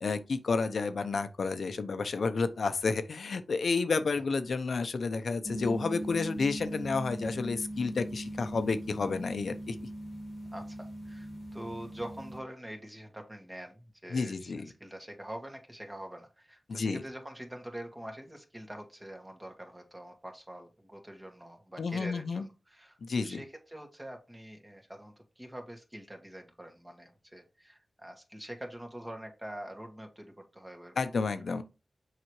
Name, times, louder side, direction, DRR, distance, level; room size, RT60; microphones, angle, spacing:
voice 1, 0.0-9.8 14.1-14.7 16.7-17.0 21.8-22.4 23.0-23.4 31.0-31.6, left 4 dB, 75° left, 0.7 m, -31 dB
sound 1, 5.4-12.4, right 1 dB, 25° left, 1.6 m, -40 dB
voice 2, 10.5-14.5 14.8-31.3, right 1 dB, 20° right, 2.0 m, -45 dB
6.4 x 4.9 x 3.1 m
cardioid pair, 45°, 0 cm